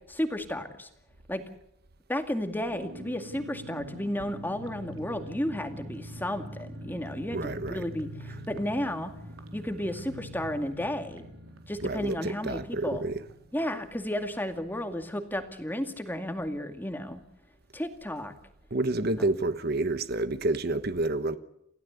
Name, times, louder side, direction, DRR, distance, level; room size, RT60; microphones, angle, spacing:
voice 1, 0.1-0.9 1.3-1.4 2.1-9.1 9.5-11.3 11.7-13.0 13.5-17.2 17.7-18.3, left 1 dB, 10° left, 2.2 m, -33 dB
sound 1, 2.7-15.1 15.3-15.4 15.7-16.0, equal, 85° right, 4.0 m, -45 dB
voice 2, 7.3-7.8 11.8-13.2 18.7-21.4, right 2 dB, 50° right, 1.2 m, -29 dB
29.0 x 16.0 x 8.3 m
head